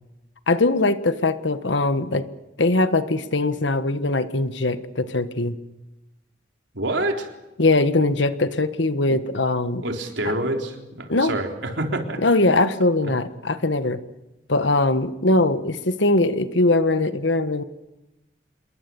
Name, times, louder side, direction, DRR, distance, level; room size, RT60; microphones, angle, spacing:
voice 1, 0.5-2.3 2.6-5.6 7.6-9.8 11.1-11.4 12.2-14.0 14.5-17.6, left 2 dB, 80° left, 11 dB, 1.4 m, -21 dB
voice 2, 6.7-7.3 9.1-9.2 9.8-12.2 13.0-13.2, right 1 dB, 80° right, 3 dB, 3.8 m, -27 dB
27.5 x 22.0 x 7.1 m, 1.0 s
head